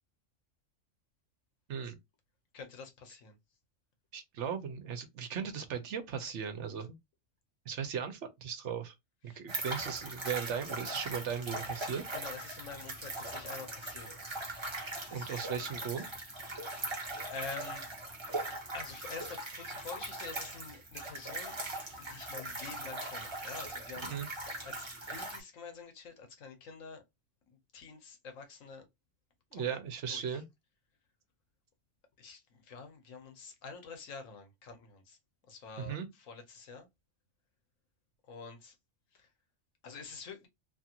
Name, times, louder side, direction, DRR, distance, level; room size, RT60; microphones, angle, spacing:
voice 1, 2.5-3.4 9.2-9.4 12.1-14.1 15.1-15.5 16.4-17.0 17.3-17.8 18.7-21.6 22.0-24.1 24.6-27.0 27.5-28.8 29.5-29.8 30.1-30.4 32.2-35.2 35.5-36.9 38.2-38.8 39.1-39.3 39.8-40.5, left 5 dB, 85° left, 1.3 m, -47 dB
voice 2, 4.1-7.0 7.7-8.9 9.2-12.0 15.1-16.1 24.1-24.3 29.5-30.4 35.8-36.1, right 7 dB, 70° right, 1.0 m, -37 dB
sound 1, 9.5-25.4, right 2 dB, 25° right, 0.9 m, -40 dB
2.9 x 2.5 x 2.8 m
omnidirectional pair, 1.3 m